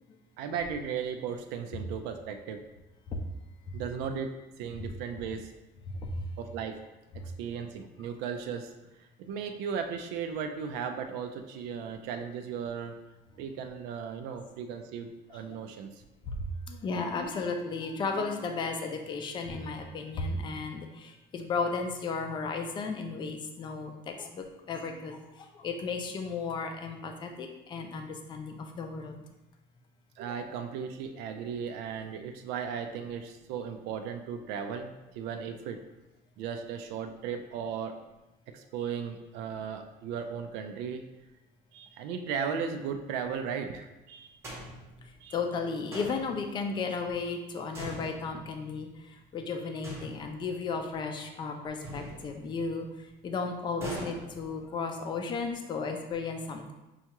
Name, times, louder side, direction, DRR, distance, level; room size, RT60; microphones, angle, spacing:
voice 1, 0.4-2.6 3.7-5.5 6.4-6.8 7.1-8.7 9.0-13.0 13.4-16.0 27.3-27.5 30.2-35.8 36.4-38.0 38.5-41.0 41.7-44.4 45.2-45.4, right 7 dB, 85° right, 6 dB, 0.4 m, -36 dB
voice 2, 16.7-29.2 45.3-48.9 49.3-52.9 53.2-56.7, left 4 dB, 30° left, 4 dB, 0.4 m, -34 dB
sound 1, 44.4-45.3 45.9-46.8 47.7-48.9 49.8-50.8 51.8-52.9 53.8-54.9, equal, 15° right, 0.8 m, -42 dB
5.4 x 2.3 x 2.9 m, 1.0 s
cardioid pair, 155°, 17 cm